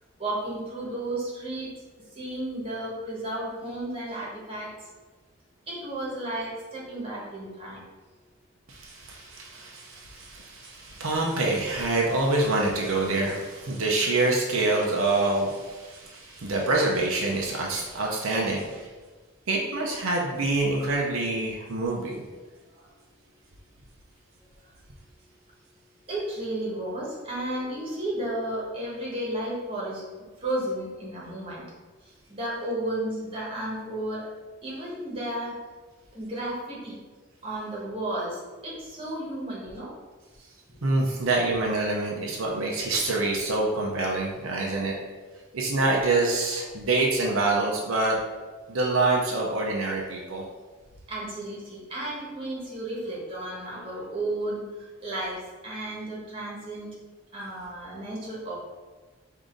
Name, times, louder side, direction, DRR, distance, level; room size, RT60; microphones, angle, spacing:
voice 1, 0.2-1.7 2.1-4.9 5.7-7.8 22.8-22.9 26.1-30.0 30.4-31.6 32.3-34.3 34.6-35.6 36.1-37.0 37.4-39.9 40.7-40.8 51.1-56.9 57.3-58.6, right 1 dB, 25° right, -5 dB, 1.3 m, -33 dB
voice 2, 8.7-18.9 19.5-22.3 40.8-45.0 45.5-48.2 48.7-50.4, right 2 dB, 80° right, -1 dB, 0.7 m, -26 dB
4.9 x 2.7 x 3.8 m, 1.3 s
head